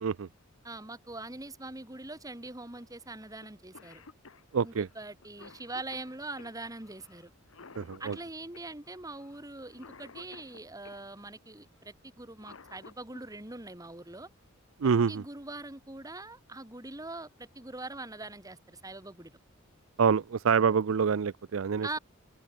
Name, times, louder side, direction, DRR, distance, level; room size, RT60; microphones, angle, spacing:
voice 1, 0.6-4.0 4.6-7.3 8.0-14.3 15.1-19.4 21.8-22.0, right 2 dB, 15° right, 2.0 m, -42 dB
Cough, 3.4-3.5 3.7-11.0 12.2-13.2 14.9-15.0 16.0-16.3 16.7-16.8 17.2-17.7, left 4 dB, 75° left, 1.2 m, -53 dB
voice 2, 4.5-4.9 7.8-8.2 14.8-15.2 20.0-22.0, right 6 dB, 70° right, 0.5 m, -26 dB
open air
head